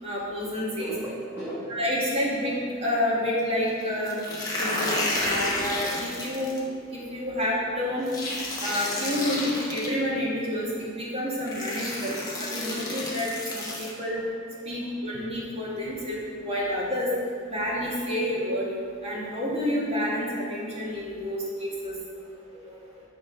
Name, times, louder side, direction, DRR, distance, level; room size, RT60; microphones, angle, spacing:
voice 1, 0.0-0.9 1.7-4.2 4.5-8.1 8.6-10.7 11.0-14.2 14.7-17.1 17.5-18.7 19.0-21.9, left 1 dB, 30° right, -5 dB, 1.8 m, -29 dB
voice 2, 0.8-1.8 9.1-9.2 14.6-14.8 15.1-15.2 22.3-23.0, right 1 dB, 10° right, -10 dB, 1.2 m, -39 dB
sound 1, 4.1-6.6 8.1-9.9 10.9-11.0 11.5-13.9, left 2 dB, 20° left, 1.2 m, -31 dB
9.0 x 3.7 x 5.5 m, 2.2 s
head